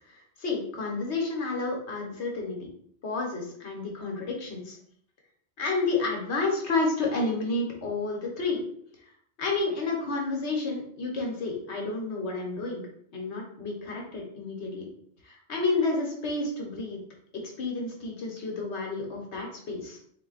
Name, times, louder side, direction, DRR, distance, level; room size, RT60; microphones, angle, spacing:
voice 1, 0.1-2.7 3.0-4.8 5.6-8.6 9.4-12.8 13.1-14.9 15.2-17.0 17.3-20.0, left 3 dB, 80° left, 0 dB, 1.3 m, -30 dB
3.8 x 2.2 x 3.9 m, 0.65 s
omnidirectional pair, 1.1 m